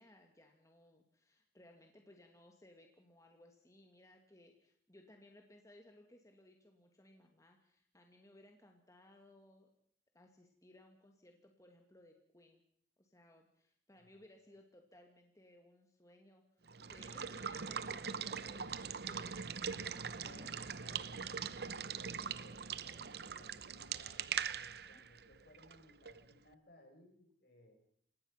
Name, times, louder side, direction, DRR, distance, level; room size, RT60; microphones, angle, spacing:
voice 1, 0.0-9.7 10.1-12.6 13.0-16.4 16.8-21.0 24.8-25.0, left 1 dB, 20° left, 3 dB, 2.3 m, -62 dB
Water / Water tap faucet / Liquid, 16.7-26.3, right 7 dB, 65° right, 0.9 m, -42 dB
voice 2, 20.0-27.7, left 1 dB, 60° left, 2 dB, 7.7 m, -63 dB
29.0 x 17.0 x 5.9 m, 0.67 s
head